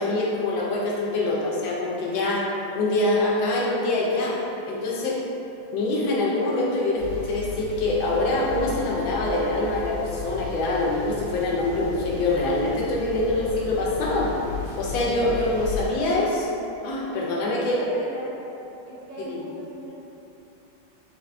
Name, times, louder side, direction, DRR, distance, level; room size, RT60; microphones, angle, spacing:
voice 1, 0.0-2.5 2.7-4.4 4.7-5.2 5.7-14.3 14.8-17.8 19.2-19.4, left 2 dB, 85° left, -4 dB, 1.5 m, -25 dB
sound 1, 7.0-15.9, left 5 dB, 45° right, 1.2 m, -35 dB
voice 2, 17.4-18.3 18.9-19.9, right 2 dB, 75° right, -8 dB, 1.6 m, -39 dB
4.3 x 3.2 x 2.6 m, 3.0 s
omnidirectional pair, 2.1 m